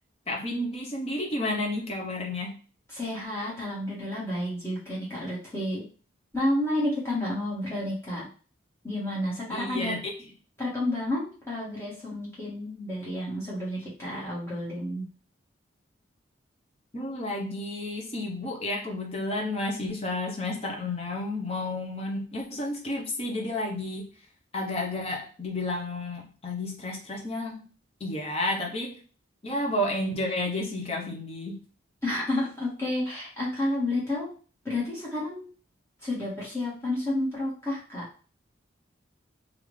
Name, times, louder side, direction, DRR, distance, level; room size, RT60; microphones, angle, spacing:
voice 1, 0.3-2.6 9.5-10.0 16.9-24.1 24.5-27.6 28.0-29.0 29.4-31.6, left 1 dB, 30° left, 0 dB, 0.7 m, -31 dB
voice 2, 2.9-5.8 6.3-8.3 8.8-9.9 10.6-15.1 32.0-34.3 34.6-35.5 36.0-38.0, left 1 dB, 15° left, -8 dB, 1.6 m, -30 dB
3.6 x 2.5 x 3.1 m, 0.38 s
head